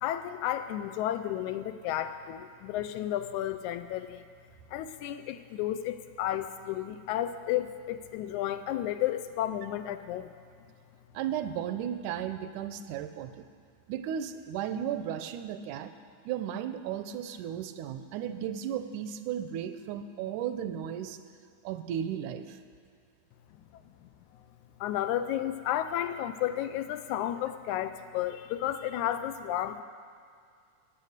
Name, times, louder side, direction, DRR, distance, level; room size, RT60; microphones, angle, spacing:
voice 1, 0.0-4.2 4.7-10.3 24.8-29.8, left 12 dB, 80° left, 11 dB, 1.9 m, -32 dB
voice 2, 11.1-13.5 13.9-15.9 16.3-21.2 21.6-22.6, right 9 dB, 85° right, 10 dB, 2.1 m, -35 dB
14.0 x 9.8 x 6.6 m, 2.2 s
omnidirectional pair, 3.6 m